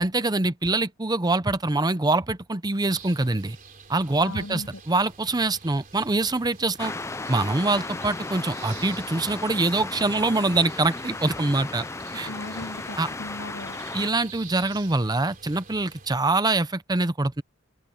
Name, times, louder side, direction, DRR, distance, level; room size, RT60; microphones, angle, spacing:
voice 1, 0.0-3.6 3.9-6.9 7.3-11.8 12.1-12.3 13.0-13.1 13.9-17.4, right 2 dB, 20° right, 0.7 m, -24 dB
sound 1, 2.9-16.1, right 5 dB, 40° right, 3.4 m, -47 dB
voice 2, 4.2-4.7 12.2-13.8, left 2 dB, 80° left, 3.2 m, -37 dB
sound 2, 6.8-14.1, left 3 dB, 15° left, 0.5 m, -35 dB
open air
head